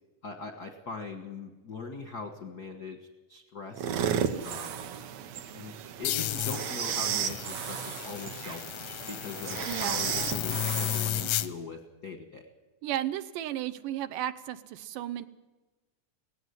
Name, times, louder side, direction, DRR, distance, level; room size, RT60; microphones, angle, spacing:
voice 1, 0.2-3.0 3.3-4.9 5.5-12.5, left 4 dB, 55° left, 5 dB, 1.1 m, -41 dB
sound 1, 3.7-11.3, right 9 dB, 65° right, 1.9 m, -34 dB
sound 2, 6.0-11.5, left 13 dB, 85° left, 2.4 m, -33 dB
voice 2, 9.7-10.1 12.8-15.3, right 12 dB, 80° right, 12 dB, 2.4 m, -34 dB
18.0 x 15.5 x 9.5 m, 1.2 s
omnidirectional pair, 3.7 m